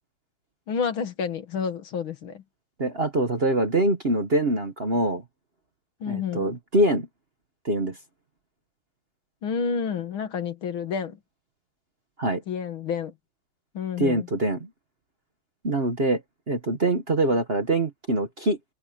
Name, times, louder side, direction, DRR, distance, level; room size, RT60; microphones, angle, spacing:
voice 1, 0.7-2.4 6.0-6.5 9.4-11.2 12.5-13.1 13.7-14.3, left 6 dB, 70° left, 2.4 m, -29 dB
voice 2, 2.8-5.2 6.0-7.1 7.6-8.0 12.2-12.4 14.0-14.7 15.6-16.2 16.5-18.6, right 1 dB, 35° right, 1.3 m, -24 dB
omnidirectional pair, 2.3 m